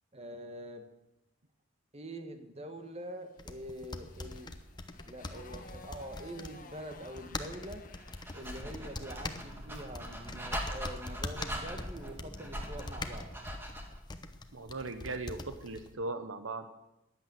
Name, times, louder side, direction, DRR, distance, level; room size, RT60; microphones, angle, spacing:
voice 1, 0.1-0.8 1.9-4.5 5.0-7.8 8.3-13.3, right 1 dB, 30° right, 7 dB, 1.5 m, -45 dB
Motorcycle, 3.3-9.4, left 3 dB, 40° left, 1.4 m, -55 dB
sound 1, 3.4-15.9, left 2 dB, 20° left, 0.9 m, -44 dB
Dog, 8.0-14.0, equal, 10° right, 2.1 m, -41 dB
voice 2, 14.5-16.7, right 3 dB, 75° right, 9 dB, 1.0 m, -38 dB
15.0 x 10.5 x 7.7 m, 0.91 s
head